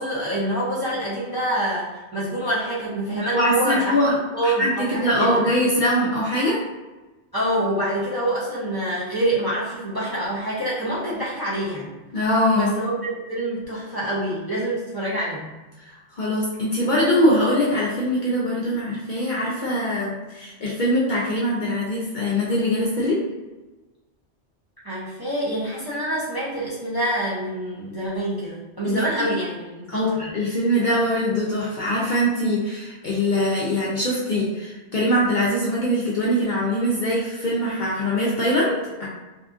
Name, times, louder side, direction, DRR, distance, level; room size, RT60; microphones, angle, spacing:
voice 1, 0.0-4.0 4.3-5.4 7.3-11.9 12.5-15.5 24.8-30.2, right 1 dB, 30° right, -8 dB, 0.5 m, -26 dB
voice 2, 3.3-4.2 4.4-6.6 12.1-12.7 15.8-23.2 28.8-29.3 29.9-39.1, equal, 55° left, -5 dB, 0.5 m, -22 dB
2.7 x 2.4 x 2.4 m, 1.1 s
omnidirectional pair, 1.2 m